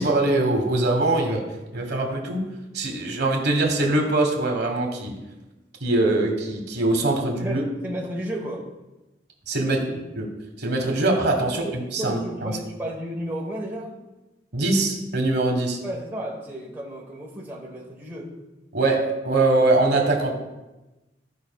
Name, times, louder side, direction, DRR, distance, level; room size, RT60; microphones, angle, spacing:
voice 1, 0.0-1.5 1.7-2.4 2.7-5.1 5.8-7.6 9.5-9.8 10.1-10.3 10.6-12.5 14.5-15.8 18.7-20.3, right 2 dB, 60° right, 2 dB, 1.4 m, -22 dB
voice 2, 7.4-8.7 9.6-10.0 11.4-13.9 15.8-18.3, right 1 dB, 10° right, -3 dB, 1.2 m, -33 dB
14.5 x 5.2 x 2.3 m, 1.0 s
head